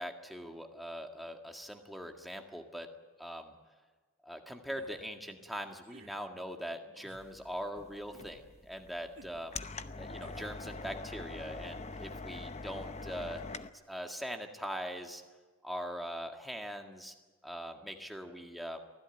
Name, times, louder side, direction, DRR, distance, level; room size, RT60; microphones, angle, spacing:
voice 1, 0.0-2.9 3.2-3.5 4.2-9.6 10.0-13.4 13.9-15.2 15.6-17.1 17.4-18.8, equal, ahead, 3 dB, 1.8 m, -41 dB
Man Hurt Noises, 4.7-5.0 5.8-6.2 6.9-7.3 8.1-8.5 9.1-9.4 10.2-10.6, right 2 dB, 70° right, 1.8 m, -56 dB
sound 1, 7.1-13.7, left 3 dB, 30° left, 0.8 m, -44 dB
24.5 x 16.0 x 9.1 m, 1.4 s
head